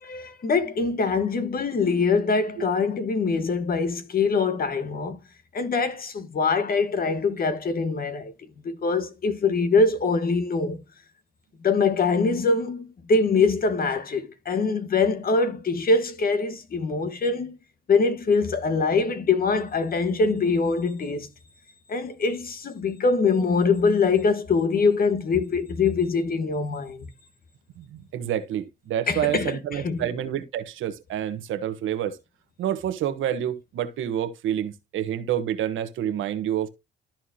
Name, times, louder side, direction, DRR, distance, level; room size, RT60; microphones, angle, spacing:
voice 1, 0.0-5.2 5.5-8.3 8.6-10.8 11.6-17.6 17.9-21.3 21.9-27.1 29.1-29.6 29.8-30.0, left 4 dB, 45° left, 1.5 m, -23 dB
voice 2, 27.8-32.2 32.6-36.7, right 10 dB, 80° right, 1.2 m, -28 dB
13.0 x 4.5 x 2.8 m
cardioid pair, 90°, 20 cm